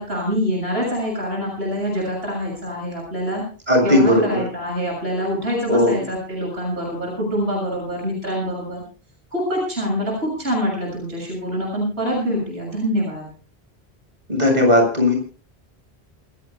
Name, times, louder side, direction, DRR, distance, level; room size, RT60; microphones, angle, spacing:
voice 1, 0.0-3.4 3.8-8.8 9.3-13.3, equal, 75° right, -2 dB, 7.2 m, -25 dB
voice 2, 3.7-4.4 5.7-6.0 14.3-15.1, left 1 dB, 40° right, 2 dB, 7.2 m, -16 dB
27.5 x 16.0 x 2.2 m, 0.39 s
omnidirectional pair, 1.1 m